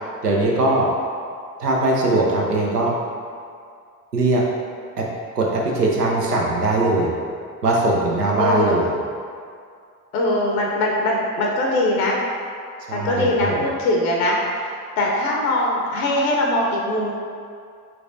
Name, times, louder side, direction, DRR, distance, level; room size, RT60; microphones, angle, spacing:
voice 1, 0.2-0.9 1.6-2.9 4.1-4.4 5.0-5.1 5.3-7.1 7.6-9.0 12.9-13.6, right 2 dB, 85° right, -3 dB, 0.6 m, -20 dB
voice 2, 8.4-8.8 10.1-12.2 12.9-14.4 15.0-17.1, left 1 dB, 70° left, -1 dB, 0.7 m, -21 dB
4.6 x 3.5 x 2.5 m, 2.3 s
figure-of-eight pair, 50°, 46 cm